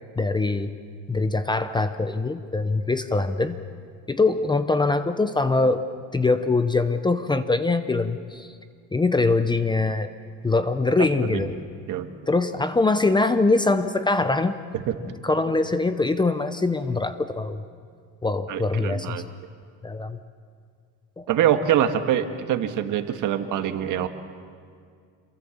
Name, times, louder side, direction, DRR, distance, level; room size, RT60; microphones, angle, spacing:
voice 1, 0.2-0.7 1.1-3.6 4.1-5.9 6.1-8.5 8.9-10.1 10.4-11.5 12.3-14.6 15.2-17.6 18.2-19.2 19.8-20.2 21.2-21.3, left 3 dB, 15° left, 11 dB, 0.7 m, -23 dB
voice 2, 14.7-15.1 18.5-19.2 21.3-24.1, right 10 dB, 60° right, 7 dB, 1.7 m, -24 dB
27.5 x 22.5 x 7.2 m, 2.2 s
cardioid pair, 135°, 36 cm